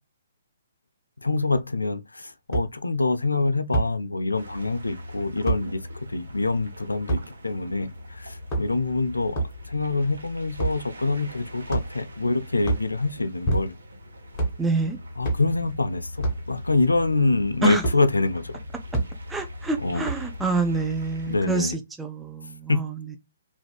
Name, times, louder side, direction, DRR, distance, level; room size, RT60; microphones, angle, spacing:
voice 1, 1.2-5.8 6.1-13.7 15.2-18.6 19.8-20.1 21.3-21.8 22.7-22.8, left 3 dB, 85° left, 0.4 m, -25 dB
sound 1, 2.5-2.7 3.7-3.9 5.4-5.6 7.1-7.2 8.3-8.9 9.3-9.6 10.5-10.8 11.7-12.1 12.6-12.9 13.4-13.9 14.3-14.6 15.2-15.5 16.2-16.4 17.8-18.0 18.9-19.1 20.0-20.3, right 2 dB, 30° left, 1.8 m, -26 dB
sound 2, 4.3-21.5, left 1 dB, 75° right, 0.7 m, -41 dB
voice 2, 14.6-15.0 17.6-17.8 19.3-21.7 22.0-23.2, right 3 dB, 10° right, 0.5 m, -26 dB
3.3 x 2.5 x 2.3 m
figure-of-eight pair, 130°, 0 cm